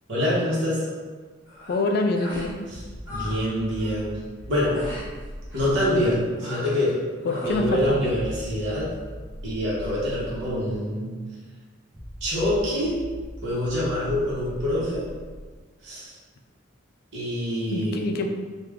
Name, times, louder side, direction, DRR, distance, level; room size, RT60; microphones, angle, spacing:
voice 1, 0.1-0.8 2.7-2.8 3.1-4.2 4.5-4.8 5.5-6.9 7.4-8.9 9.4-11.1 12.2-12.9 13.4-15.0 15.8-16.2 17.1-18.1, left 1 dB, 60° right, -8 dB, 1.1 m, -25 dB
sound 1, 1.5-1.8 2.1-2.5 2.8-3.4 3.7-4.0 4.7-5.1 5.5-5.8 6.4-6.9 7.2-7.6, left 1 dB, 5° right, 1.4 m, -38 dB
voice 2, 1.7-2.6 7.2-8.1 17.7-18.3, left 2 dB, 50° left, 4 dB, 0.3 m, -25 dB
sound 2, 2.7-6.4 7.5-10.8 11.9-15.6, equal, 30° right, 0.7 m, -40 dB
3.3 x 2.3 x 3.4 m, 1.4 s
head